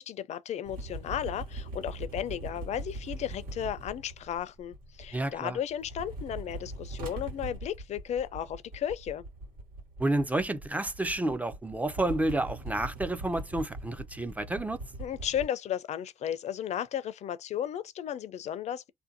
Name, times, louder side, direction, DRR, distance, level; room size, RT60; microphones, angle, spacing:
voice 1, 0.0-9.2 15.0-18.9, left 10 dB, 50° left, 0.4 m, -34 dB
sound 1, 0.6-5.4 5.7-15.4, right 1 dB, 85° right, 1.2 m, -41 dB
voice 2, 5.1-5.6 10.0-14.8, right 2 dB, 10° right, 0.4 m, -30 dB
2.6 x 2.2 x 2.6 m
cardioid pair, 95°, 14 cm